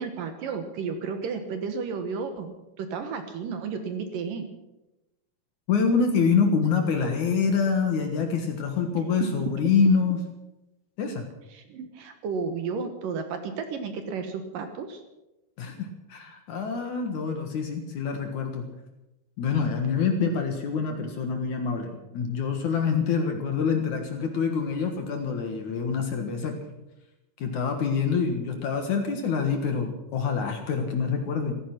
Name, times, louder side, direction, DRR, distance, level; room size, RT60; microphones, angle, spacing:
voice 1, 0.0-4.5 8.9-9.3 11.5-15.0, right 5 dB, 65° right, 7 dB, 2.6 m, -33 dB
voice 2, 5.7-10.2 11.0-11.3 15.6-18.7 19.4-26.8 27.4-31.5, left 5 dB, 60° left, 4 dB, 2.5 m, -26 dB
15.5 x 15.0 x 6.0 m, 0.96 s
omnidirectional pair, 4.6 m